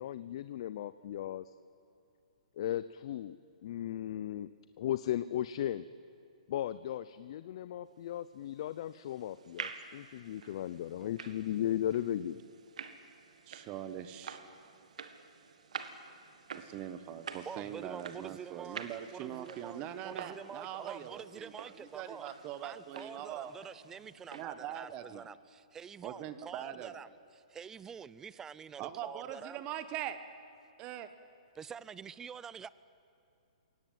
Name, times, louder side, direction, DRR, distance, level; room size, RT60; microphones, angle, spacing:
voice 1, 0.0-1.4 2.6-3.4 3.6-4.5 4.8-5.9 6.5-12.5, left 11 dB, 50° left, 0.6 m, -36 dB
sound 1, 8.4-24.4, right 6 dB, 75° right, 1.7 m, -49 dB
voice 2, 13.5-14.4 16.5-23.5 24.3-25.3 26.0-26.9 28.8-30.2 30.8-31.1, right 11 dB, 30° right, 1.2 m, -42 dB
voice 3, 17.5-22.3 22.6-29.6 31.5-32.7, right 7 dB, 10° right, 0.5 m, -47 dB
22.5 x 18.0 x 9.3 m
hypercardioid pair, 145°, 4 cm